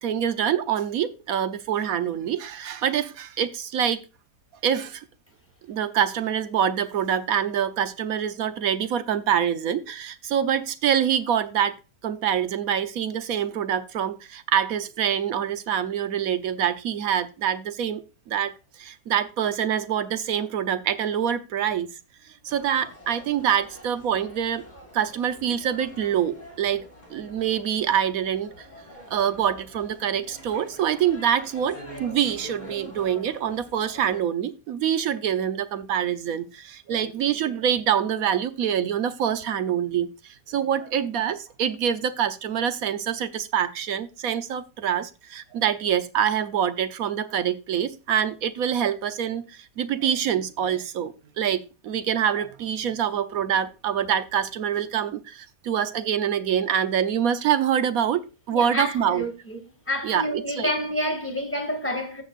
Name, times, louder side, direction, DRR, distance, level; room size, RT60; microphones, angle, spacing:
voice 1, 0.0-4.0 4.6-5.0 5.7-11.8 12.0-18.0 18.3-21.9 22.4-24.6 24.9-26.8 27.1-28.7 29.1-58.2 58.5-59.2 60.0-60.7, right 9 dB, 60° right, 1.1 m, -25 dB
sound 1, 22.5-34.2, equal, 25° left, 4.0 m, -45 dB
voice 2, 58.5-59.6 59.9-62.2, equal, 5° left, 2.2 m, -28 dB
15.5 x 6.4 x 2.5 m
omnidirectional pair, 2.0 m